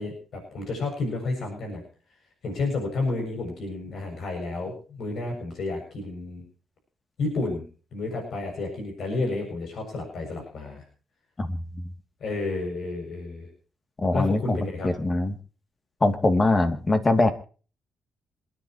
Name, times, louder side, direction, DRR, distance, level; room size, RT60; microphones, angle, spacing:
voice 1, 0.0-1.8 2.4-6.4 7.2-7.6 7.9-10.8 12.2-13.5 14.1-14.9, left 3 dB, 60° left, 2 dB, 7.1 m, -31 dB
voice 2, 11.4-11.9 14.0-14.6 14.8-15.3 16.0-17.3, left 2 dB, 25° left, 8 dB, 2.7 m, -23 dB
27.0 x 10.5 x 3.1 m, 0.38 s
cardioid pair, 90°, 0 cm